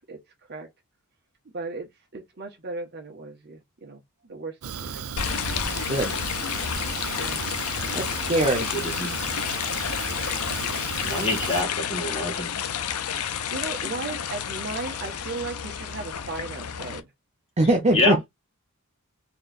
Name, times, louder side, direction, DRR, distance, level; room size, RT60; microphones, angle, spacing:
voice 1, 1.5-5.3 7.1-7.6 13.5-17.1, right 3 dB, 50° right, 1.3 m, -36 dB
Fire, 4.6-11.6, right 7 dB, 70° right, 0.5 m, -35 dB
sound 1, 5.2-17.0, left 8 dB, 80° left, 0.7 m, -30 dB
voice 2, 7.9-8.7 17.6-18.3, right 2 dB, 30° right, 0.7 m, -22 dB
voice 3, 8.7-9.1 11.0-12.6 17.9-18.2, left 2 dB, 25° left, 1.8 m, -26 dB
4.1 x 3.1 x 2.5 m
head